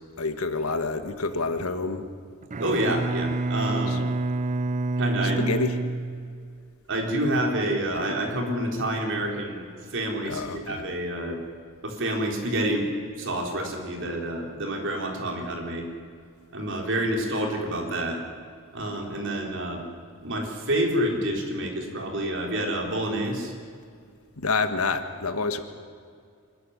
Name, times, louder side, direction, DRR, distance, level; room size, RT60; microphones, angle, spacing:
voice 1, 0.2-2.1 3.9-4.0 5.4-5.8 10.2-10.9 24.4-25.6, left 3 dB, 75° left, 9 dB, 1.6 m, -28 dB
Bowed string instrument, 2.4-6.8, right 2 dB, 35° right, 0.5 m, -28 dB
voice 2, 2.6-4.0 5.0-5.4 6.9-9.6 9.9-11.4 11.8-12.9 13.2-15.8 16.5-18.2 18.7-19.8 20.2-23.5, right 1 dB, 60° right, 2 dB, 3.9 m, -28 dB
25.0 x 14.0 x 9.9 m, 2.3 s
head